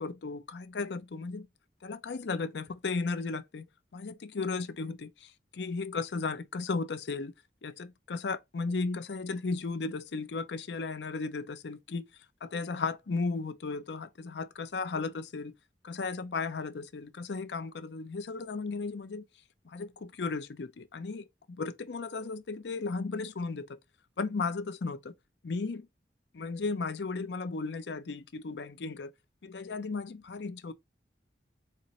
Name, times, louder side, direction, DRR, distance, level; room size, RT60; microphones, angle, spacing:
voice 1, 0.0-1.5 1.8-3.7 3.9-7.3 7.6-12.1 12.4-15.5 15.8-19.2 19.6-23.8 24.2-25.1 25.4-25.9 26.3-29.1 29.4-30.7, left 4 dB, 75° left, 0.5 m, -35 dB
4.2 x 2.6 x 4.1 m
head